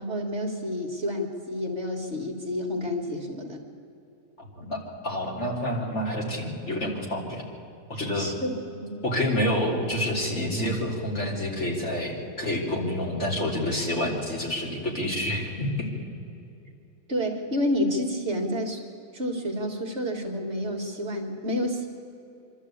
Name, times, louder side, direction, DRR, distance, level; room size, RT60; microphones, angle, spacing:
voice 1, 0.0-3.6 8.1-9.0 17.1-18.8 19.1-21.9, left 1 dB, 45° right, 2 dB, 2.0 m, -29 dB
voice 2, 4.4-7.4 7.9-8.3 9.0-15.9, left 1 dB, 45° left, -2 dB, 3.5 m, -28 dB
25.0 x 12.5 x 8.5 m, 2.8 s
omnidirectional pair, 1.7 m